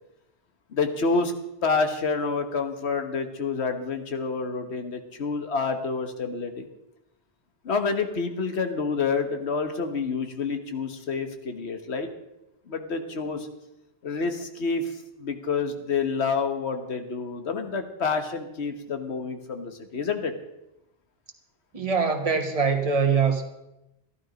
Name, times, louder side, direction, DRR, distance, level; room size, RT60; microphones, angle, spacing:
voice 1, 0.7-1.3 1.6-6.6 7.6-12.1 12.7-13.5 14.0-14.9 15.2-20.3, left 4 dB, 90° left, 7 dB, 1.5 m, -28 dB
voice 2, 21.7-23.4, right 5 dB, 35° right, 4 dB, 1.4 m, -23 dB
13.0 x 12.0 x 5.1 m, 0.89 s
omnidirectional pair, 1.1 m